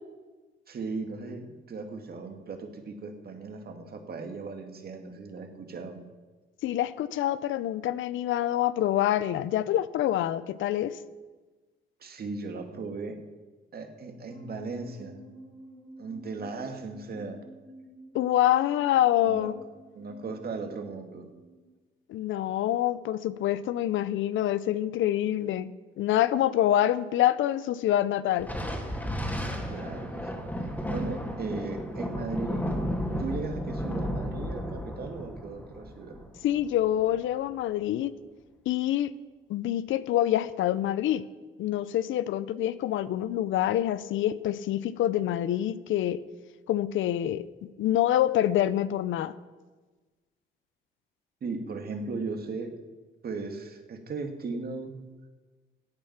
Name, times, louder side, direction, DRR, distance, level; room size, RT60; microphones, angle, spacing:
voice 1, 0.7-6.0 12.0-13.2 13.7-15.2 16.0-17.4 19.2-19.5 19.9-21.3 29.7-30.3 30.6-32.8 33.2-36.2 51.4-52.7 53.2-54.9, right 4 dB, 50° right, 5 dB, 2.0 m, -37 dB
voice 2, 6.6-11.0 18.1-19.5 22.1-28.5 36.4-38.1 38.7-39.1 39.5-41.2 41.6-46.2 46.7-47.4 47.8-49.3, left 12 dB, 80° left, 16 dB, 0.6 m, -26 dB
sound 1, 14.3-21.7, right 1 dB, 30° left, 2.8 m, -50 dB
Thunder, 28.4-37.1, equal, 10° left, 2.5 m, -33 dB
15.0 x 8.9 x 5.9 m, 1.3 s
cardioid pair, 90°, 20 cm